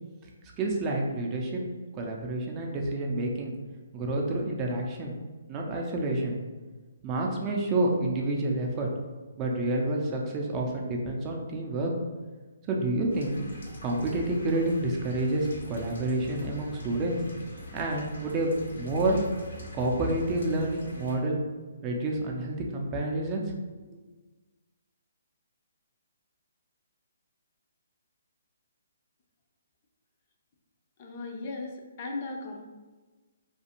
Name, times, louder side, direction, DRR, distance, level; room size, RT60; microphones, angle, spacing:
voice 1, 0.6-1.6 1.9-3.5 3.9-5.1 5.5-6.4 7.0-8.9 9.4-11.9 12.7-13.4 13.8-17.2 17.7-19.2 19.7-21.4 21.8-23.4, right 2 dB, 25° right, 0 dB, 0.4 m, -29 dB
sound 1, 13.1-21.2, left 2 dB, 70° left, 0.8 m, -43 dB
voice 2, 31.0-32.6, left 3 dB, 40° left, 1 dB, 0.4 m, -37 dB
2.5 x 2.4 x 2.8 m, 1.3 s
hypercardioid pair, 145°, 0 cm